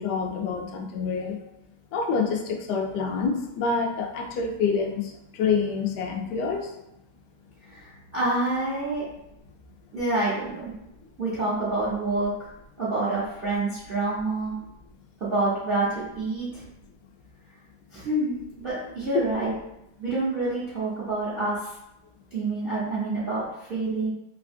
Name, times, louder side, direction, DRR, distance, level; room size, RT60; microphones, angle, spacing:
voice 1, 0.0-1.4 1.9-6.7, left 5 dB, 75° left, 1 dB, 1.0 m, -27 dB
voice 2, 7.7-9.1 9.9-10.7 11.2-12.3 12.8-14.5 15.2-16.6 17.9-19.5 20.0-21.7 22.3-24.1, right 2 dB, 60° right, -8 dB, 0.5 m, -27 dB
3.2 x 2.8 x 2.5 m, 0.84 s
omnidirectional pair, 2.1 m